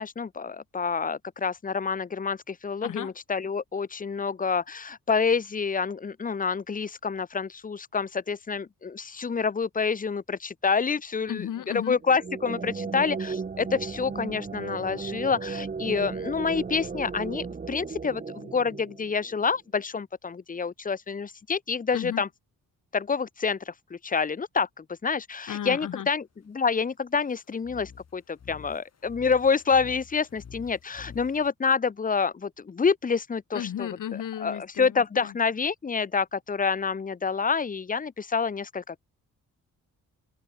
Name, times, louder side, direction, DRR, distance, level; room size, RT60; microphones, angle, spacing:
voice 1, 0.0-11.5 11.7-22.3 22.9-33.9 34.4-39.0, left 5 dB, 25° left, 0.6 m, -28 dB
voice 2, 2.8-3.1 11.3-12.0 21.9-22.2 25.5-26.1 33.5-35.4, left 10 dB, 65° left, 1.0 m, -34 dB
sound 1, 12.0-19.4, right 5 dB, 25° right, 0.7 m, -35 dB
sound 2, 27.6-31.5, left 7 dB, 50° left, 1.6 m, -47 dB
cardioid pair, 90°, 33 cm